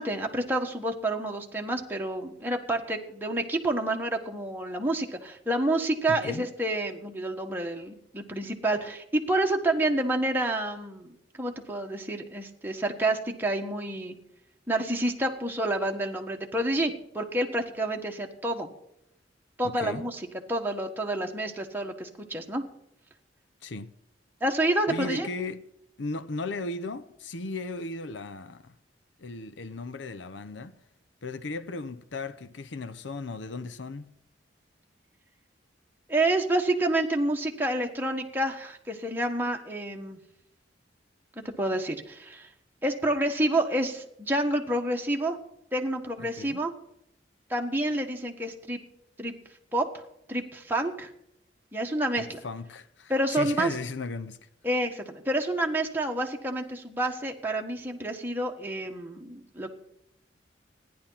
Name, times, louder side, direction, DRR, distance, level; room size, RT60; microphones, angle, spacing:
voice 1, 0.0-14.1 14.7-18.7 19.6-22.6 24.4-25.3 36.1-40.2 41.6-42.5 42.8-45.4 45.7-46.7 47.5-48.8 49.2-49.3 49.7-50.0 50.3-51.1 51.7-52.4 53.1-53.7 54.6-59.7, right 1 dB, 10° right, 1.4 m, -29 dB
voice 2, 6.1-6.4 19.6-20.0 23.6-23.9 24.9-25.6 26.0-28.7 29.2-30.7 31.2-34.1 46.2-46.6 52.2-54.5, left 3 dB, 80° left, 0.7 m, -36 dB
14.5 x 10.5 x 5.7 m
head